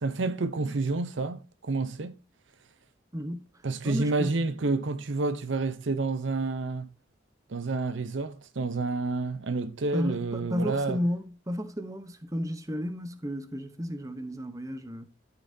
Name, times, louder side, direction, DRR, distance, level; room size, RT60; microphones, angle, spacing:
voice 1, 0.0-2.1 3.6-6.9 7.5-11.0, right 3 dB, 70° right, 0.7 m, -29 dB
voice 2, 3.1-3.5 3.8-4.3 9.9-15.1, equal, 15° right, 0.8 m, -33 dB
13.5 x 5.6 x 2.7 m
head